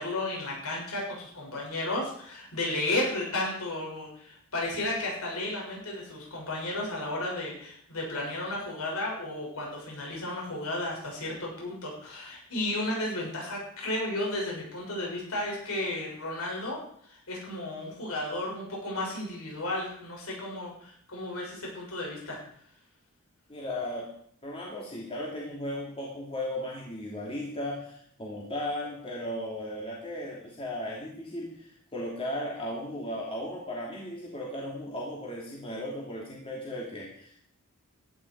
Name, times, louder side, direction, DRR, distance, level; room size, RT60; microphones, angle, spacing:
voice 1, 0.0-22.4, left 1 dB, 75° left, -2 dB, 7.1 m, -33 dB
voice 2, 23.5-24.1 24.4-37.5, left 1 dB, 25° left, -3 dB, 3.1 m, -36 dB
17.0 x 12.0 x 5.0 m, 0.64 s
head